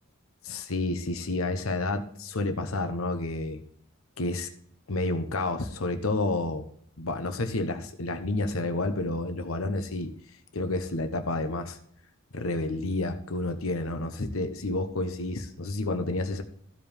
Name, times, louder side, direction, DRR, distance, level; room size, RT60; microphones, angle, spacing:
voice 1, 0.4-3.6 4.2-4.5 4.9-6.7 7.0-10.1 10.5-11.8 12.3-16.4, left 2 dB, 75° left, 7 dB, 1.0 m, -30 dB
14.5 x 5.1 x 3.5 m, 0.64 s
head